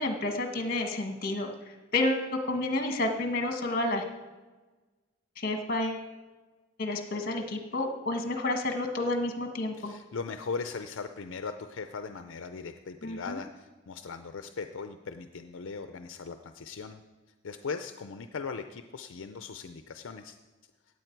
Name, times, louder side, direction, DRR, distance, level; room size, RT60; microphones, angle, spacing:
voice 1, 0.0-1.5 1.9-4.0 5.4-6.0 6.8-9.9 13.0-13.4, left 2 dB, 45° left, 4 dB, 1.5 m, -30 dB
voice 2, 9.8-17.0 17.4-20.4, left 5 dB, 75° left, 8 dB, 0.5 m, -39 dB
17.0 x 8.6 x 4.6 m, 1.3 s
head